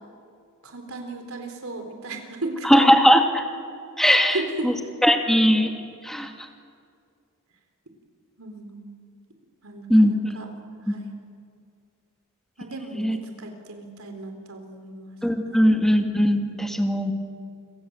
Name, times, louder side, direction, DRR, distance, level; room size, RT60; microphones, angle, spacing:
voice 1, 0.6-2.8 4.0-4.8 8.4-8.9 9.6-10.5 10.9-11.1 12.6-15.2 15.5-15.6, right 2 dB, 80° right, 5 dB, 3.9 m, -35 dB
voice 2, 2.6-3.4 4.0-4.4 4.6-4.7 5.0-5.7 6.0-6.3 9.9-10.1 10.9-11.0 12.9-13.2 15.2-17.1, equal, ahead, 4 dB, 2.4 m, -19 dB
29.0 x 26.0 x 8.0 m, 2.2 s
head